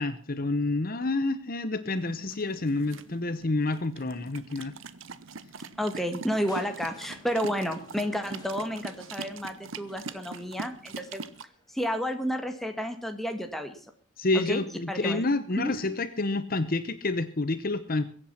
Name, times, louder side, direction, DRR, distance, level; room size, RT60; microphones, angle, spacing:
voice 1, 0.0-4.7 14.2-18.1, left 2 dB, 45° left, 12 dB, 0.9 m, -28 dB
sound 1, 1.9-11.4, right 4 dB, 70° right, 0.9 m, -43 dB
voice 2, 5.8-11.2 11.7-13.8 14.3-14.6 14.9-15.3 15.6-15.7, equal, ahead, 5 dB, 1.8 m, -31 dB
Crushing, 6.5-12.4 13.3-13.4, left 2 dB, 20° left, 5.5 m, -55 dB
22.5 x 8.8 x 5.8 m, 0.44 s
head